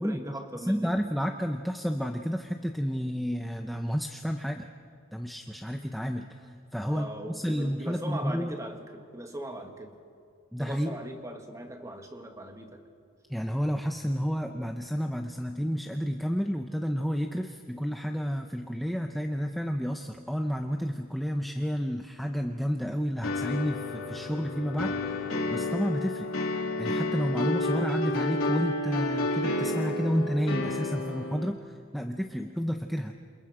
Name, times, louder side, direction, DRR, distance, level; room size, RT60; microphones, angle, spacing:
voice 1, 0.0-1.0 6.9-9.9 10.6-12.8 32.4-32.6, right 1 dB, 15° right, 4 dB, 1.8 m, -40 dB
voice 2, 0.5-4.7 5.1-8.5 10.5-10.9 13.3-25.2 25.5-26.3 26.8-31.6 31.9-33.2, equal, ahead, 4 dB, 0.7 m, -31 dB
sound 1, 23.2-31.5, left 2 dB, 85° left, 3.1 m, -30 dB
28.5 x 27.5 x 5.0 m, 2.3 s
head